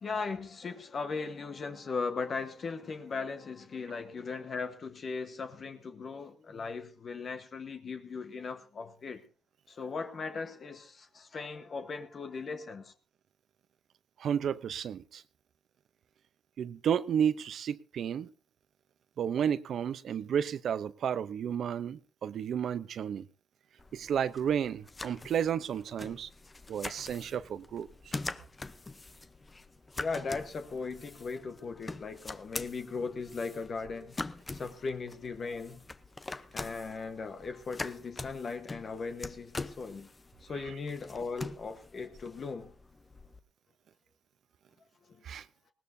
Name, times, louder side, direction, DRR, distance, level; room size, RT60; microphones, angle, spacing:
voice 1, 0.0-9.2 9.7-12.9 30.0-34.2 34.5-35.9 36.5-40.1 40.4-42.7 45.1-45.2, left 4 dB, 45° left, 1.3 m, -38 dB
voice 2, 14.2-15.2 16.6-18.3 19.2-23.3 23.9-26.3 26.7-28.2 40.7-40.8 45.2-45.5, right 8 dB, 65° right, 0.7 m, -32 dB
sound 1, 23.8-43.4, left 3 dB, 25° left, 0.8 m, -44 dB
20.0 x 18.0 x 2.7 m
cardioid pair, 90°, 0 cm